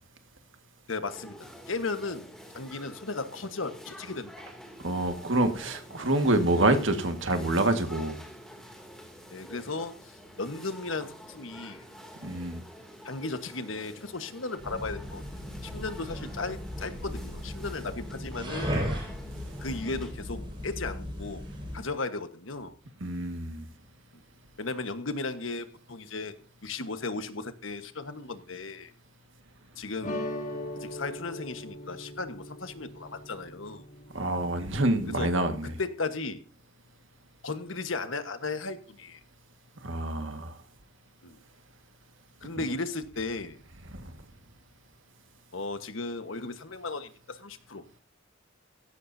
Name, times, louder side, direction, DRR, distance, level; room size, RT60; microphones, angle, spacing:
voice 1, 0.9-2.3 2.5-4.3 9.3-11.8 13.0-15.2 15.6-18.8 19.6-21.4 21.7-22.7 24.6-26.3 26.6-28.9 29.8-30.2 30.8-33.8 35.1-35.3 35.8-36.4 37.4-39.2 41.2-41.4 42.4-43.6 45.5-47.8, left 3 dB, 85° left, 1.3 m, -35 dB
sound 1, 1.1-20.1, equal, 5° left, 2.7 m, -48 dB
voice 2, 4.8-8.2 12.2-12.6 23.0-23.6 34.1-35.7 39.8-40.6 43.9-44.1, right 1 dB, 75° right, 1.8 m, -27 dB
sound 2, 14.6-21.9, equal, 25° right, 5.4 m, -36 dB
sound 3, 30.0-34.9, left 1 dB, 40° left, 2.0 m, -39 dB
16.5 x 15.0 x 2.7 m
head